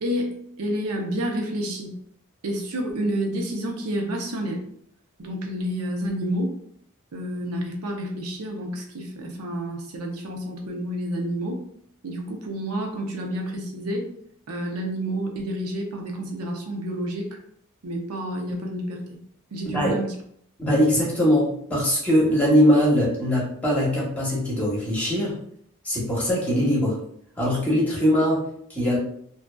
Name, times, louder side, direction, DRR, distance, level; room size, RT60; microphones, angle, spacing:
voice 1, 0.0-2.0 2.4-4.6 5.2-6.6 7.1-11.6 12.0-14.1 14.5-17.4 17.8-19.2 19.5-20.1, equal, 75° right, 2 dB, 0.6 m, -29 dB
voice 2, 20.6-25.4 25.8-27.0 27.4-29.0, equal, 5° left, -6 dB, 0.9 m, -21 dB
2.6 x 2.3 x 2.2 m, 0.66 s
head